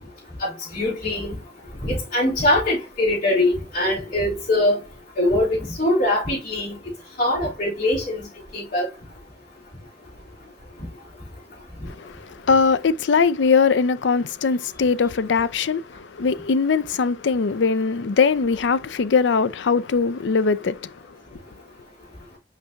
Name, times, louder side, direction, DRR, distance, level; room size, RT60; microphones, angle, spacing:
voice 1, 0.4-1.4 1.8-4.8 5.2-6.7 7.2-8.3 8.5-8.9, left 1 dB, 50° left, 3.9 m, -22 dB
voice 2, 11.9-20.9, left 5 dB, 80° left, 0.5 m, -21 dB
5.9 x 5.6 x 2.9 m
head